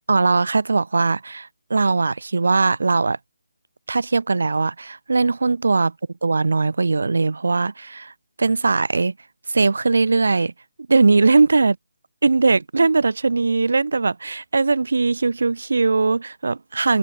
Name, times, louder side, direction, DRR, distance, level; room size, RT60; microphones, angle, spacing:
voice 1, 0.1-3.2 3.9-5.9 6.2-8.1 8.4-9.1 9.5-10.5 10.9-11.7 12.2-17.0, right 3 dB, 75° right, 1.0 m, -19 dB
hypercardioid pair, 170°, 0 cm